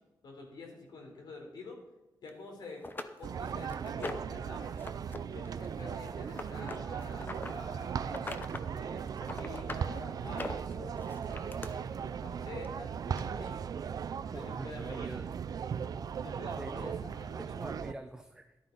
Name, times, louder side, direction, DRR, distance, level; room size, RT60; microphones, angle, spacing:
voice 1, 0.2-1.8 2.2-2.9 3.2-4.7 5.3-8.2 8.7-13.6 14.3-15.2 16.2-17.4, left 3 dB, 70° left, 1 dB, 3.7 m, -48 dB
sound 1, 2.3-2.4 2.8-4.4 4.8-5.2 5.4-7.5 8.0-8.7 9.0-9.9 10.3-11.7 12.6-12.7 13.2-13.3, left 2 dB, 25° left, 0.9 m, -41 dB
sound 2, 3.2-17.9, right 7 dB, 55° right, 0.5 m, -38 dB
voice 2, 14.3-15.3 16.5-17.0 17.4-18.6, right 1 dB, 10° right, 6 dB, 0.6 m, -45 dB
13.5 x 11.5 x 4.0 m, 1.0 s
cardioid pair, 110°, 8 cm